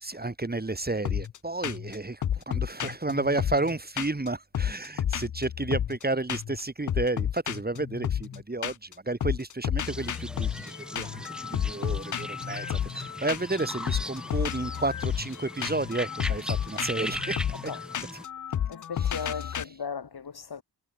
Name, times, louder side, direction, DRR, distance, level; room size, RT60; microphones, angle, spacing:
voice 1, 0.0-11.2 11.5-17.7 19.0-19.7, right 2 dB, 20° right, 2.3 m, -32 dB
sound 1, 1.0-1.4 1.6-1.9 2.2-4.3 4.5-6.0 6.3-6.6 6.9-8.9 9.2-19.6, left 9 dB, 45° left, 0.5 m, -31 dB
sound 2, 9.8-18.2, equal, ahead, 4.9 m, -39 dB
voice 2, 18.7-20.6, left 6 dB, 65° left, 2.7 m, -36 dB
cardioid pair, 65°, 41 cm